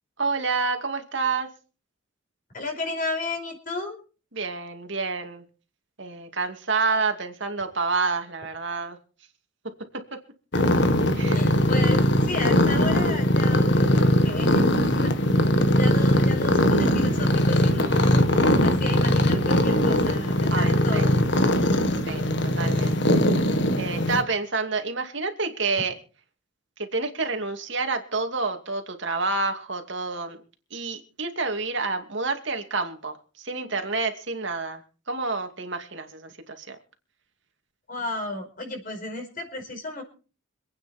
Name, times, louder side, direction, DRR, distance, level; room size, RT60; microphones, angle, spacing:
voice 1, 0.2-1.5 4.3-5.4 6.0-9.0 11.2-11.4 20.5-21.1 22.1-23.0 23.8-25.9 26.8-30.4 30.7-34.8 35.1-36.8, right 4 dB, 60° right, 5 dB, 2.5 m, -28 dB
voice 2, 2.5-4.0 10.5-10.6 11.3-14.6 14.9-15.1 15.8-21.1 37.9-40.0, left 2 dB, 40° left, 4 dB, 5.1 m, -33 dB
sound 1, 10.5-24.2, left 1 dB, 60° left, 1.6 m, -21 dB
26.0 x 9.4 x 4.4 m, 0.37 s
head